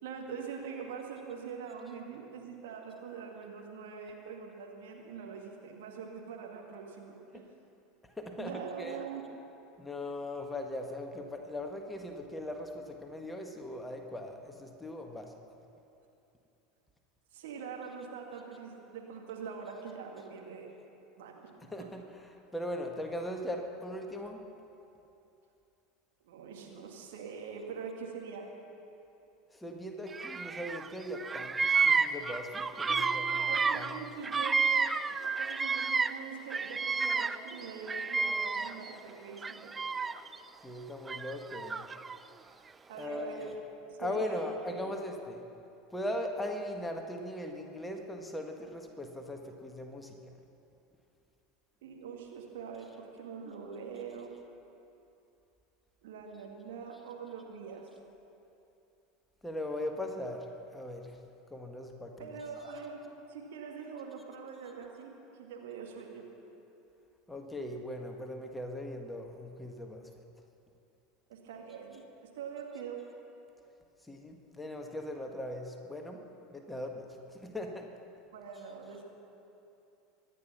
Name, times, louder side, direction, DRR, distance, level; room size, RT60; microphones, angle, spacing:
voice 1, 0.0-7.4 8.4-9.2 17.3-20.7 21.2-21.5 21.8-21.9 26.2-28.5 32.9-34.8 35.2-39.7 42.9-43.5 43.9-44.9 51.8-54.3 56.0-57.9 62.2-66.3 71.3-72.0 72.3-73.0 78.3-79.0, right 6 dB, 65° right, 1 dB, 2.1 m, -43 dB
voice 2, 8.0-9.0 9.8-15.3 21.6-24.4 29.5-33.9 40.6-41.8 43.0-43.5 44.0-45.4 45.9-50.2 59.4-61.1 61.5-62.4 67.3-70.1 74.1-76.2 76.5-77.9, left 1 dB, 10° left, 3 dB, 1.6 m, -39 dB
Bird vocalization bird call bird song, 30.1-30.9 31.1-36.2 36.5-38.9 39.4-40.4 41.1-42.2, right 5 dB, 20° right, 0.4 m, -30 dB
24.0 x 9.9 x 6.0 m, 2.8 s
figure-of-eight pair, 75°, 0 cm